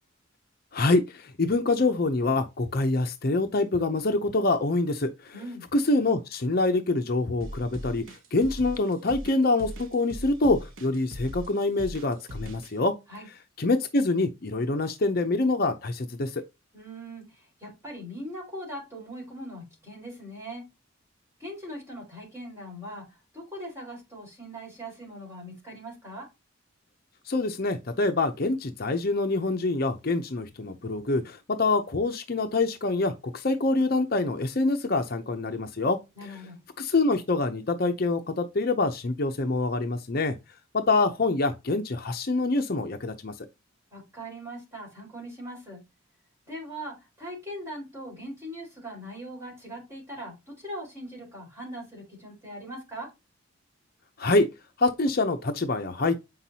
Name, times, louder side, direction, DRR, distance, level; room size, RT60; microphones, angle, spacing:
voice 1, 0.7-5.3 5.7-12.9 13.6-16.4 27.3-36.3 36.8-40.4 40.7-43.5 54.2-54.5 54.8-56.2, left 2 dB, 45° left, 0.6 m, -25 dB
voice 2, 5.3-5.7 13.1-13.3 16.7-20.6 21.4-26.3 36.1-36.6 43.9-45.8 46.5-53.1, equal, 15° right, 4.5 m, -40 dB
sound 1, 7.4-12.7, equal, 75° right, 1.1 m, -39 dB
8.1 x 5.8 x 2.8 m
head